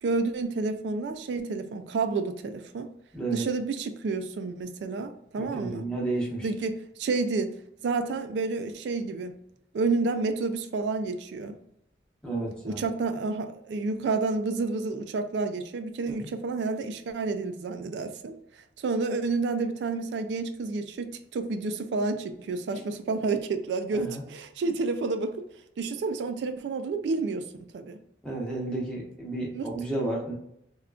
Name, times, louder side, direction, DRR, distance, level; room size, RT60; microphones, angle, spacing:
voice 1, 0.0-2.9 3.3-5.9 6.4-7.6 7.8-9.3 9.7-11.6 12.6-25.4 25.8-28.0 29.5-29.7, right 3 dB, 80° right, 8 dB, 0.3 m, -30 dB
voice 2, 3.1-3.4 5.4-6.5 12.2-12.8 16.1-16.3 23.9-24.2 28.2-30.3, right 2 dB, 5° left, -4 dB, 0.8 m, -32 dB
3.5 x 2.3 x 2.3 m, 0.76 s
head